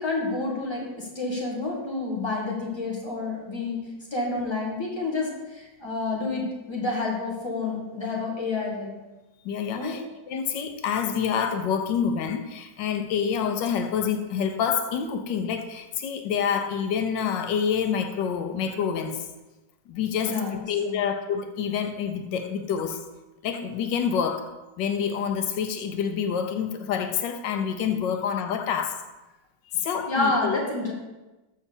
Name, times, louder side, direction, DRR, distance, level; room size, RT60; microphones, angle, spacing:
voice 1, 0.0-3.8 4.1-8.9 9.7-9.9 20.2-21.0 30.1-30.9, left 3 dB, 15° left, -3 dB, 1.9 m, -29 dB
voice 2, 9.4-19.3 19.9-20.3 20.7-23.0 23.4-24.5 24.8-29.0 29.7-30.6, left 7 dB, 85° left, 7 dB, 1.4 m, -27 dB
7.1 x 5.6 x 7.0 m, 1.1 s
omnidirectional pair, 1.9 m